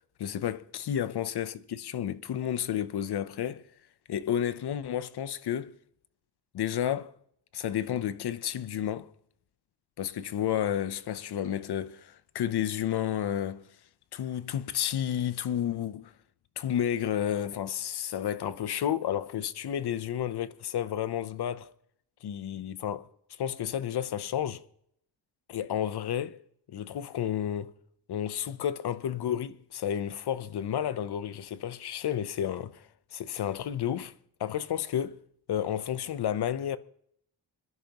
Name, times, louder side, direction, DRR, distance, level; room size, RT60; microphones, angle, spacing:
voice 1, 0.2-3.7 4.1-5.8 6.5-7.1 7.5-9.1 10.0-13.7 14.1-16.1 16.6-21.7 22.2-23.1 23.4-24.6 25.5-26.4 26.7-27.7 28.1-34.1 34.4-35.2 35.5-36.8, left 10 dB, 60° left, 0.8 m, -31 dB
27.0 x 11.0 x 3.0 m
wide cardioid pair, 150°, 44 cm